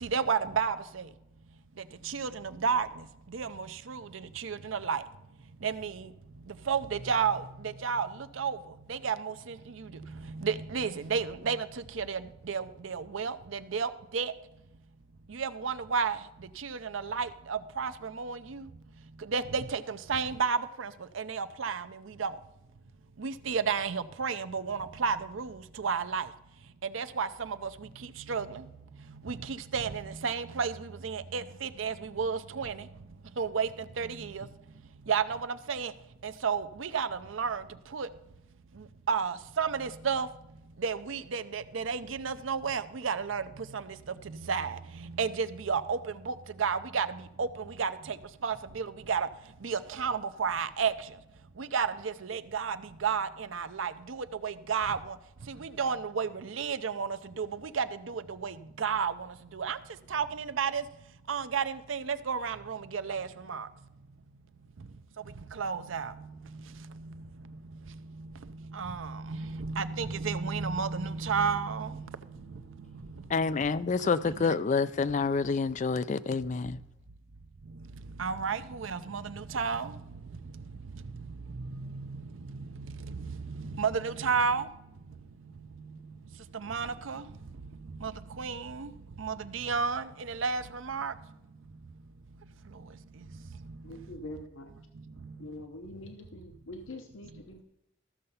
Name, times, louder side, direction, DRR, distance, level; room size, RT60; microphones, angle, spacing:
voice 1, 0.0-0.8 2.1-2.9 3.3-4.0 4.4-5.0 5.6-5.9 6.7-7.4 7.8-8.1 8.4-8.6 8.9-9.3 10.4-11.7 12.0-12.2 12.5-13.4 13.7-14.3 15.3-16.2 16.6-17.9 18.2-18.6 19.3-20.9 21.2-21.8 22.2-22.3 23.2-25.5 25.8-26.2 26.9-27.6 28.3-28.5 29.3-29.4 29.7-30.7 31.0-32.7 33.4-33.7 34.0-34.5 35.1-35.4 35.7-35.9 36.2-37.1 37.3-37.6 37.9-38.1 39.1-40.3 40.8-43.4 44.5-44.8 45.2-46.0 46.3-46.4 46.6-47.1 47.4-47.5 47.8-47.9 48.4-49.3 49.6-50.9 51.6-52.8 53.0-55.0 55.8-57.1 57.4-57.5 57.8-59.1 59.5-59.8 60.1-60.8 61.3-63.7 65.6-66.1 68.8-69.1 69.6-71.9 74.4-74.5 78.2-79.9 83.5-84.7 86.6-87.2 88.0-88.1 88.4-88.9 89.2-91.1, right 6 dB, 80° right, 0.6 m, -31 dB
voice 2, 73.3-76.8, left 4 dB, 35° left, 0.4 m, -28 dB
voice 3, 93.8-94.7 95.4-97.6, left 1 dB, 80° left, 0.9 m, -44 dB
14.0 x 6.7 x 5.5 m
head